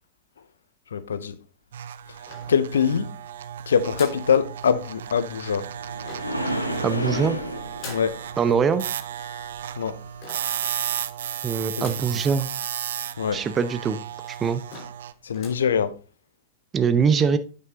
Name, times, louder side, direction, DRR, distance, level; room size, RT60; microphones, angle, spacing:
voice 1, 0.9-1.4 2.5-3.1 3.7-5.7 7.9-8.2 9.8-10.0 11.8-11.9 13.2-13.4 15.2-16.0, left 7 dB, 70° left, 0.6 m, -23 dB
sound 1, 1.7-15.1, right 9 dB, 60° right, 0.5 m, -34 dB
sound 2, 2.3-3.0 3.9-4.3 6.0-6.5 7.8-8.2 10.2-10.6 11.8-12.2 12.7-12.8 13.0-13.1 13.8-13.9 14.3-14.4 14.7-15.0 15.3-15.7, left 4 dB, 40° left, 4.3 m, -42 dB
sound 3, 4.8-10.1 14.0-14.1 14.7-14.8, equal, 90° left, 1.0 m, -33 dB
voice 2, 6.8-7.4 8.4-8.9 11.4-12.5 13.3-14.0 14.4-14.6 16.7-17.4, right 6 dB, 25° right, 0.7 m, -22 dB
9.4 x 5.5 x 3.8 m
figure-of-eight pair, 90°, 0 cm